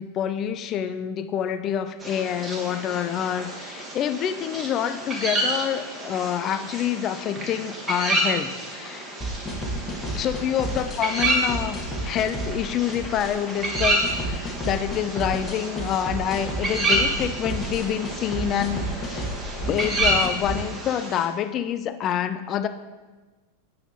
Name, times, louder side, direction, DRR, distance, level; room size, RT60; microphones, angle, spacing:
voice 1, 0.0-9.1 10.1-19.3 19.7-22.7, left 9 dB, 30° left, 11 dB, 0.3 m, -27 dB
sound 1, 2.0-21.3, right 1 dB, 20° right, 1.2 m, -29 dB
sound 2, 9.2-20.6, equal, 15° left, 1.0 m, -31 dB
7.9 x 5.6 x 2.7 m, 1.2 s
figure-of-eight pair, 90°, 0 cm